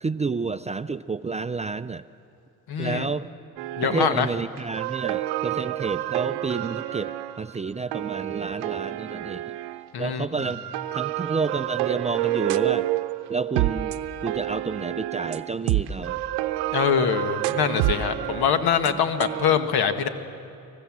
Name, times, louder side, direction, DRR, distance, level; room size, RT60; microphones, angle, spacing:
voice 1, 0.0-2.0 2.8-3.3 3.8-7.1 7.4-9.6 10.0-10.6 10.9-12.9 13.3-14.0 14.2-16.2 18.8-19.0, right 4 dB, 20° right, 12 dB, 0.4 m, -30 dB
voice 2, 2.7-3.1 3.8-4.3 9.9-10.2 16.7-20.1, left 7 dB, 70° left, 9 dB, 1.6 m, -23 dB
sound 1, 3.6-4.3 4.6-9.9 10.4-19.5, right 15 dB, 90° right, 0.7 m, -29 dB
25.0 x 19.0 x 7.4 m, 2.7 s
cardioid pair, 80°, 40 cm